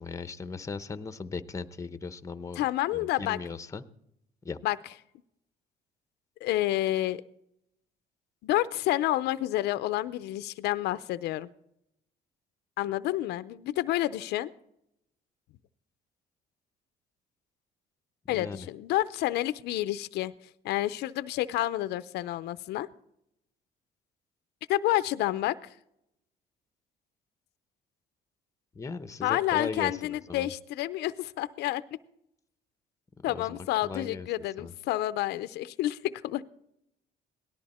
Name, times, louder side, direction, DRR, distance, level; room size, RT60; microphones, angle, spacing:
voice 1, 0.0-2.6 2.9-3.8 4.4-4.6 18.3-18.7 28.7-30.5 33.3-34.3 34.6-34.7, left 4 dB, 20° left, 12 dB, 0.8 m, -38 dB
voice 2, 2.6-3.4 4.6-4.8 6.4-7.2 8.4-11.5 12.8-14.5 18.3-20.3 20.6-22.9 24.7-25.8 29.2-31.8 33.2-36.4, left 15 dB, 80° left, 14 dB, 0.6 m, -29 dB
18.0 x 13.0 x 4.3 m, 0.77 s
cardioid pair, 110°, 17 cm